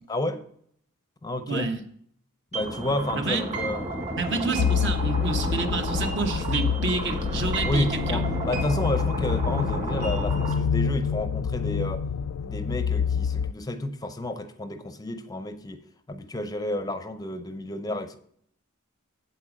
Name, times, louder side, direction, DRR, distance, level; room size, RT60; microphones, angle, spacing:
voice 1, 0.1-0.4 1.2-1.7 2.5-4.2 7.6-12.0 12.4-15.8 16.1-18.2, left 1 dB, 20° left, 0.5 m, -31 dB
voice 2, 1.5-1.8 3.2-3.4 4.2-8.2, right 4 dB, 55° right, 1.1 m, -29 dB
sound 1, 2.5-10.5, right 1 dB, 35° right, 2.3 m, -32 dB
sound 2, 4.6-13.5, left 6 dB, 75° left, 0.4 m, -27 dB
8.4 x 8.2 x 5.1 m
head